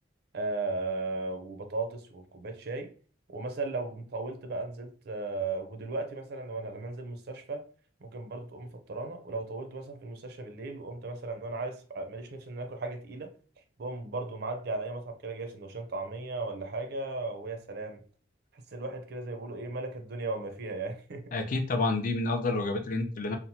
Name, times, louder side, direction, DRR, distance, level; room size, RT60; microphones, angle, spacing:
voice 1, 0.3-2.9 3.3-7.7 8.0-13.3 13.8-18.0 18.5-21.3, right 3 dB, 55° right, 6 dB, 0.5 m, -36 dB
voice 2, 21.3-23.4, left 2 dB, 45° left, 6 dB, 0.4 m, -29 dB
2.9 x 2.0 x 2.7 m, 0.40 s
head